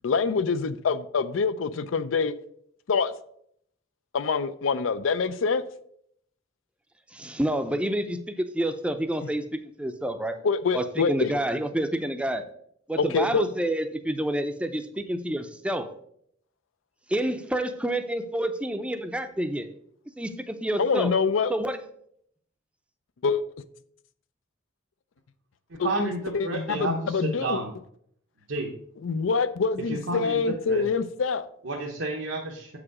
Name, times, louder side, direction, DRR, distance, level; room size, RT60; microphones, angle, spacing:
voice 1, 0.0-2.3 2.9-3.1 4.1-5.6 9.2-9.3 10.4-11.3 13.0-13.5 20.8-21.5 23.2-23.4 25.8-27.6 29.0-31.5, left 5 dB, 90° left, 0.5 m, -25 dB
voice 2, 7.1-10.4 10.7-12.4 12.9-15.9 17.1-19.7 20.2-21.1 21.5-21.8, right 1 dB, 5° right, 0.5 m, -28 dB
voice 3, 25.7-27.7 28.5-28.7 29.9-30.8 31.6-32.8, right 2 dB, 85° right, 0.9 m, -31 dB
7.3 x 4.9 x 4.8 m
head